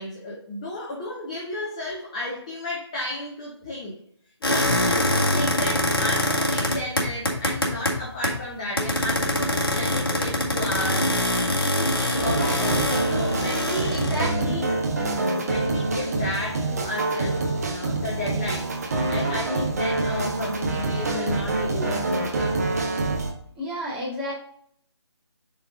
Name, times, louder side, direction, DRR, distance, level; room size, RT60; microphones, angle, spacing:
voice 1, 0.0-4.0 4.4-12.6 13.1-14.7 15.4-22.6, left 1 dB, 15° left, -3 dB, 0.6 m, -33 dB
sound 1, 4.4-8.5 8.8-14.4, left 1 dB, 55° left, 1.7 m, -24 dB
sound 2, 12.2-23.3, right 2 dB, 35° right, 1.0 m, -26 dB
voice 2, 13.9-14.6 23.6-24.3, equal, 5° right, -7 dB, 1.3 m, -31 dB
7.5 x 3.5 x 3.6 m, 0.65 s
figure-of-eight pair, 155°, 14 cm